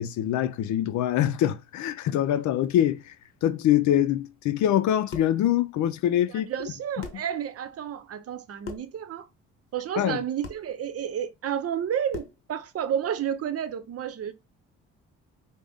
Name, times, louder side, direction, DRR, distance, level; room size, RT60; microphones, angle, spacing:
voice 1, 0.0-3.1 3.4-6.5 10.0-10.2, left 11 dB, 70° left, 0.5 m, -24 dB
sound 1, 5.1-5.4 6.6-6.7 7.0-7.3 8.6-9.0 10.4-10.7 12.1-12.5, left 4 dB, 45° left, 1.1 m, -39 dB
voice 2, 6.4-9.3 9.7-14.3, right 9 dB, 50° right, 0.7 m, -31 dB
5.2 x 2.1 x 3.4 m
cardioid pair, 90°, 30 cm